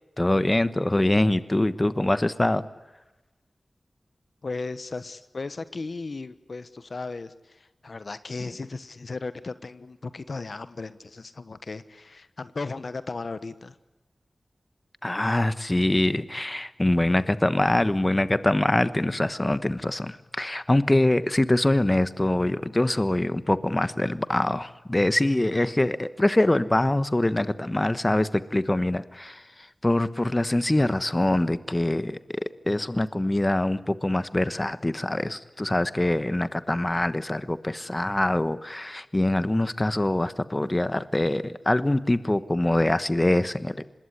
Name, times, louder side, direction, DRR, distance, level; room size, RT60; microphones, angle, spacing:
voice 1, 0.2-2.6 15.0-29.4 29.8-43.8, left 1 dB, 25° left, 13 dB, 1.2 m, -24 dB
voice 2, 4.4-13.8, left 3 dB, 70° left, 13 dB, 1.2 m, -36 dB
25.5 x 21.0 x 9.9 m, 1.0 s
wide cardioid pair, 55°, 0 cm